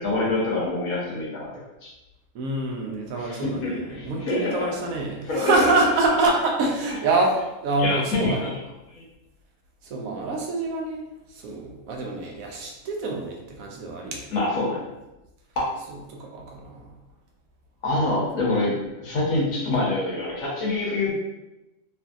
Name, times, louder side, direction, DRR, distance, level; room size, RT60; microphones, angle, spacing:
voice 1, 0.0-1.5 1.8-1.9 3.2-4.5 5.3-5.7 7.8-8.5 8.9-9.0 14.3-14.9 15.6-15.7 17.8-21.1, left 2 dB, 75° left, -6 dB, 1.4 m, -26 dB
voice 2, 2.3-7.4 7.6-8.5 9.8-11.0 11.3-14.2 16.1-16.9, right 2 dB, 75° right, 0 dB, 1.0 m, -26 dB
3.1 x 2.6 x 2.4 m, 0.98 s
omnidirectional pair, 1.5 m